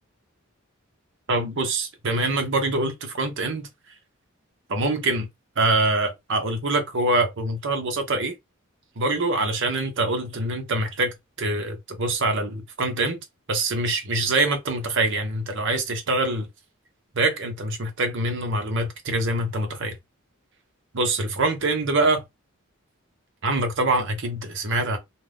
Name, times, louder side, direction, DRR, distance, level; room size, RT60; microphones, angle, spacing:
voice 1, 1.3-3.7 4.7-5.3 5.6-8.3 9.0-13.2 13.5-16.5 17.1-20.0 20.9-22.2 23.4-25.0, right 2 dB, 60° right, 0.8 m, -24 dB
2.5 x 2.3 x 3.4 m
head